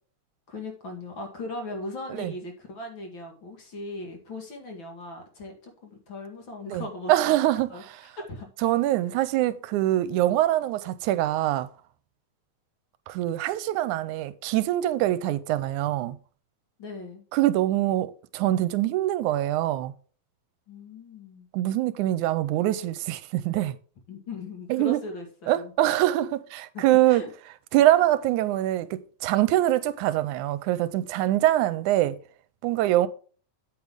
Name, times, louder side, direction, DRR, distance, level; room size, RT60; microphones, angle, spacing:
voice 1, 0.5-7.3 7.7-7.8 8.2-8.5 16.8-17.2 20.7-21.5 24.1-25.7 26.7-27.3, left 2 dB, 45° left, 2.4 m, -38 dB
voice 2, 6.7-7.9 8.6-11.7 13.1-16.2 17.3-19.9 21.5-23.8 24.7-25.0 25.5-27.2 27.7-32.2 32.6-33.1, right 14 dB, 85° right, 2.1 m, -24 dB
8.5 x 8.4 x 3.6 m
omnidirectional pair, 3.5 m